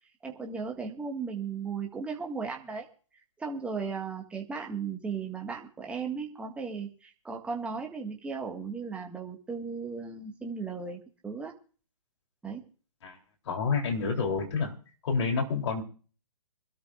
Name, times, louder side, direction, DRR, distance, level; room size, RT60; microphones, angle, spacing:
voice 1, 0.2-2.9 3.4-11.5 12.4-12.7, right 5 dB, 5° right, 0 dB, 1.8 m, -36 dB
voice 2, 13.5-14.7 15.0-15.8, left 5 dB, 55° left, 2 dB, 3.6 m, -28 dB
25.0 x 12.5 x 2.6 m, 0.39 s
hypercardioid pair, 140°, 18 cm